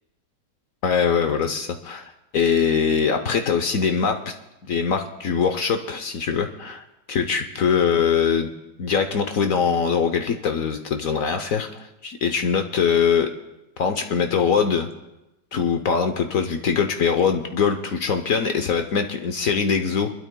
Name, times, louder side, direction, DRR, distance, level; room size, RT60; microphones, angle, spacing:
voice 1, 0.8-4.2 4.7-8.5 8.8-11.7 12.0-13.3 13.8-14.9 15.5-20.1, left 6 dB, 60° left, 6 dB, 1.0 m, -22 dB
29.5 x 12.5 x 2.2 m, 0.95 s
omnidirectional pair, 2.0 m